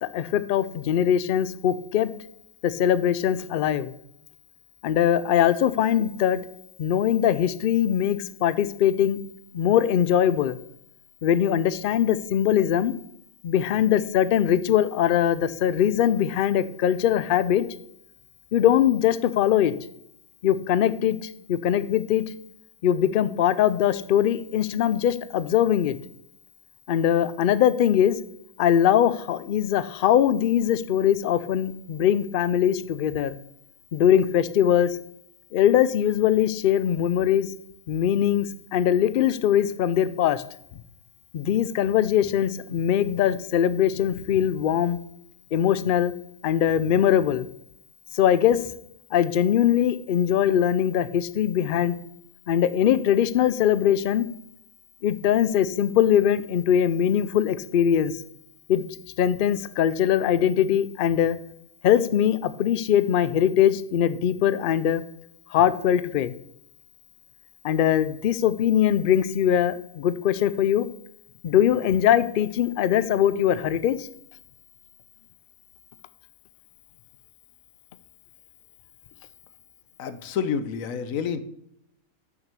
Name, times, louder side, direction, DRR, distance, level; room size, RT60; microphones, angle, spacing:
voice 1, 0.0-2.1 2.6-3.9 4.8-6.4 6.8-9.2 9.5-10.6 11.2-12.9 13.4-17.7 18.5-19.7 20.4-21.2 21.5-22.2 22.8-26.0 26.9-28.2 28.6-33.3 33.9-35.0 35.5-37.5 37.9-38.5 38.7-40.4 41.3-45.0 45.5-46.1 46.4-47.5 48.1-48.6 49.1-52.0 52.5-54.2 55.0-58.1 58.7-58.8 59.2-61.4 61.8-65.0 65.5-66.3 67.6-70.8 71.4-74.1, left 10 dB, 85° left, 15 dB, 0.4 m, -21 dB
voice 2, 80.0-81.4, left 7 dB, 70° left, 13 dB, 1.1 m, -28 dB
6.6 x 6.0 x 6.7 m, 0.76 s
omnidirectional pair, 1.5 m